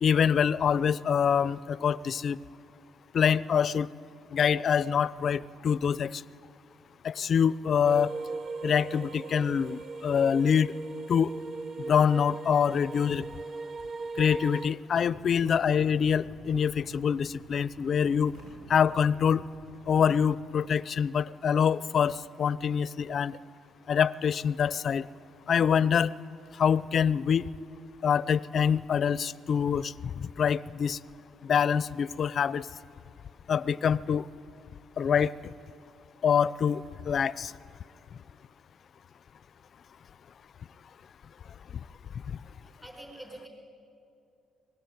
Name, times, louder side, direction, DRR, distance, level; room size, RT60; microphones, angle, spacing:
voice 1, 0.0-2.4 3.1-3.9 4.3-6.2 7.0-8.1 8.6-10.7 11.1-11.3 11.8-13.3 14.2-18.3 18.7-19.4 19.9-23.4 23.9-25.0 25.5-26.1 26.6-27.5 28.0-29.9 30.2-31.0 31.4-32.7 33.5-34.2 35.0-35.3 36.2-36.8 37.1-37.5 42.3-42.4, left 7 dB, 55° left, 19 dB, 0.5 m, -25 dB
sound 1, 7.8-14.7, right 3 dB, 60° right, 0.9 m, -38 dB
sound 2, 15.0-20.2, right 1 dB, 80° right, 7.4 m, -52 dB
voice 2, 42.6-43.5, right 1 dB, 10° right, 2 dB, 4.8 m, -46 dB
23.5 x 20.5 x 9.3 m, 2.7 s
cardioid pair, 90°, 0 cm